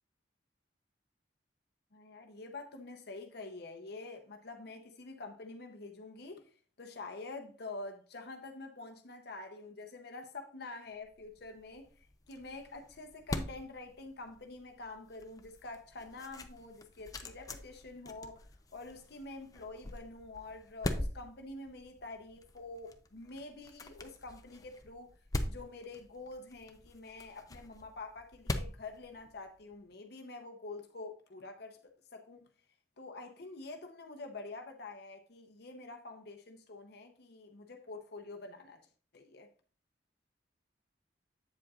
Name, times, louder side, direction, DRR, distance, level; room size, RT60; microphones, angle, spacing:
voice 1, 1.9-6.4 6.8-25.1 25.5-31.8 32.1-32.4 33.0-38.8 39.1-39.5, left 3 dB, 60° left, 0.8 m, -47 dB
sound 1, 11.0-29.7, left 1 dB, 20° left, 0.5 m, -43 dB
8.4 x 7.6 x 2.4 m
head